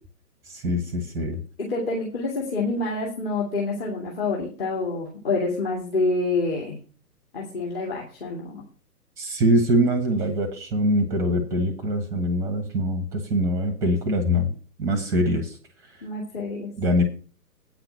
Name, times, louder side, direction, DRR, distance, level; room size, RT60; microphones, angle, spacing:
voice 1, 0.5-1.4 9.2-14.5 14.8-15.6 16.8-17.0, equal, 5° right, 8 dB, 0.8 m, -23 dB
voice 2, 1.6-6.8 7.3-8.6 16.0-16.7, left 3 dB, 35° left, -3 dB, 2.4 m, -27 dB
8.8 x 5.9 x 6.9 m, 0.39 s
figure-of-eight pair, 130°, 49 cm